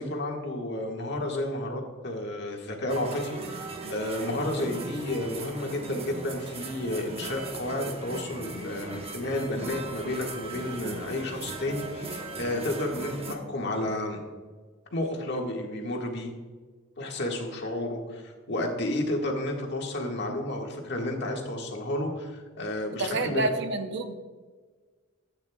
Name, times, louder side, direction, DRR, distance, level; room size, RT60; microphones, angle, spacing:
voice 1, 0.0-14.2 14.9-16.3 17.0-23.5, left 1 dB, 55° left, 1 dB, 1.7 m, -31 dB
sound 1, 2.9-13.3, right 2 dB, 30° right, 0.9 m, -39 dB
voice 2, 23.0-24.1, right 2 dB, 55° right, 7 dB, 0.8 m, -28 dB
14.5 x 8.8 x 2.3 m, 1.4 s
head